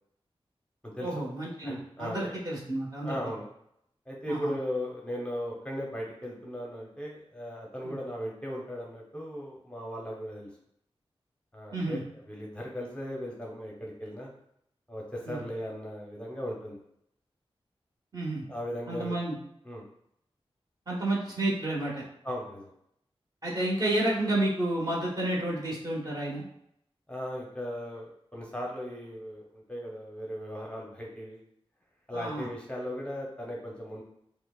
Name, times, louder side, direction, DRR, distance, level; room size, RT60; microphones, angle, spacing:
voice 1, 1.0-3.2 4.3-4.5 7.8-8.0 11.7-12.0 15.2-15.4 18.1-18.4 18.9-19.4 20.9-22.0 23.4-26.4 32.1-32.5, right 1 dB, 40° right, -5 dB, 1.3 m, -30 dB
voice 2, 1.7-2.3 3.0-3.4 4.1-10.5 11.5-12.0 12.3-14.3 14.9-16.8 18.5-19.1 19.6-19.9 22.2-22.7 27.1-31.4 32.1-34.0, equal, 10° left, -2 dB, 0.7 m, -37 dB
6.0 x 2.1 x 2.3 m, 0.74 s
wide cardioid pair, 75°, 10 cm